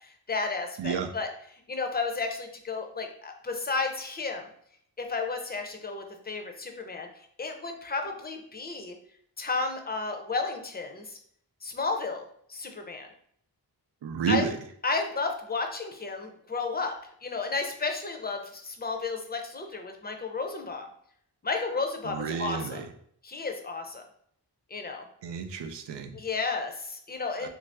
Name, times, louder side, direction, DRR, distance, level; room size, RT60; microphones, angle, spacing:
voice 1, 0.3-1.3 1.7-4.4 5.0-7.1 7.4-9.0 9.4-11.2 11.6-12.2 12.5-13.1 14.3-14.5 14.8-16.9 17.2-20.8 21.4-22.8 23.2-24.0 24.7-25.1 26.1-27.5, left 4 dB, 25° left, 4 dB, 0.5 m, -32 dB
voice 2, 0.8-1.1 14.0-14.6 22.0-22.9 25.2-26.2 27.4-27.5, right 7 dB, 90° right, 7 dB, 0.5 m, -31 dB
3.2 x 2.6 x 3.3 m, 0.65 s
wide cardioid pair, 95°, 41 cm